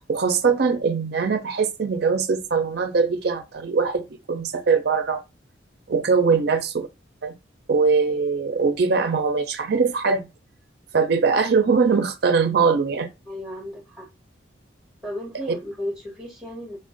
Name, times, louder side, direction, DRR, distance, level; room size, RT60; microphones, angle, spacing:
voice 1, 0.1-5.2 5.9-6.9 7.2-7.3 7.7-10.2 10.9-13.1, right 5 dB, 55° right, 0.4 m, -21 dB
voice 2, 13.3-14.1 15.0-16.8, left 1 dB, 5° right, 1.2 m, -34 dB
2.5 x 2.1 x 3.7 m
head